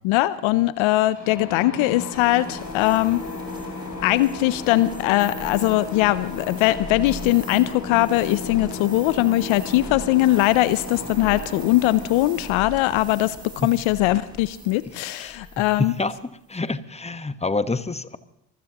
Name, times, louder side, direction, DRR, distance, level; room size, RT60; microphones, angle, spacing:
voice 1, 0.0-3.2 4.0-15.9, left 16 dB, 75° left, 17 dB, 0.6 m, -21 dB
sound 1, 1.1-14.8, left 3 dB, 35° left, 6.6 m, -36 dB
sound 2, 2.1-16.2, right 1 dB, 10° right, 3.3 m, -41 dB
voice 2, 15.2-16.1 16.5-18.2, left 3 dB, 15° left, 13 dB, 1.2 m, -27 dB
25.5 x 15.5 x 2.9 m, 0.84 s
hypercardioid pair, 45°, 48 cm